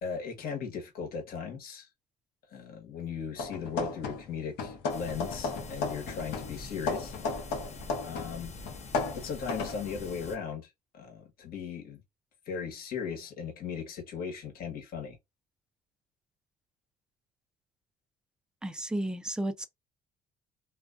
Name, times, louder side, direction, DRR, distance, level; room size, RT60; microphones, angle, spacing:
voice 1, 0.0-1.9 2.5-7.1 8.0-8.5 9.1-12.0 12.4-15.2, left 6 dB, 65° left, 1.1 m, -37 dB
sound 1, 3.4-4.3 4.6-8.4 8.7-9.8, left 4 dB, 80° left, 0.7 m, -34 dB
sound 2, 4.9-10.4, left 3 dB, 45° left, 0.6 m, -45 dB
voice 2, 18.6-19.7, right 1 dB, 5° right, 0.3 m, -33 dB
2.4 x 2.2 x 2.3 m
cardioid pair, 110°, 17 cm